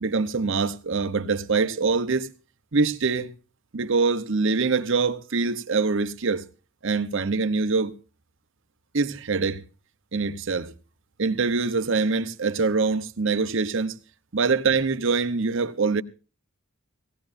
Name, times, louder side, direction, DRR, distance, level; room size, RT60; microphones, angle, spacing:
voice 1, 0.0-2.3 2.7-3.3 3.7-6.5 6.8-7.9 8.9-9.6 10.1-10.7 11.2-14.0 14.3-16.0, right 4 dB, 60° right, 0.8 m, -24 dB
18.5 x 17.5 x 2.6 m
head